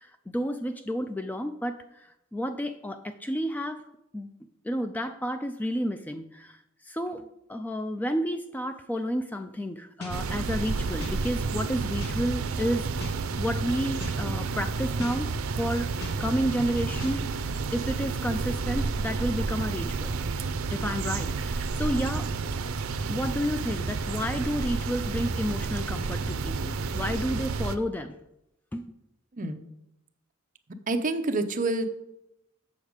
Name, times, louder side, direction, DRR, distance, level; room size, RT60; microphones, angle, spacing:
voice 1, 0.0-3.8 4.1-4.3 4.6-6.6 6.8-13.1 13.4-15.9 16.2-20.2 20.7-22.3 23.1-28.1 28.7-29.0, equal, 10° left, 8 dB, 0.3 m, -31 dB
sound 1, 10.0-10.1 11.0-11.1 12.0-12.1 13.0-13.1 14.0-14.1 15.0-15.1 16.0-16.1 17.0-17.1, left 3 dB, 55° left, 1.6 m, -38 dB
sound 2, 10.1-27.8, right 4 dB, 85° right, 0.5 m, -30 dB
voice 2, 30.9-31.9, right 2 dB, 40° right, 8 dB, 0.6 m, -27 dB
7.0 x 6.5 x 5.0 m, 0.82 s
head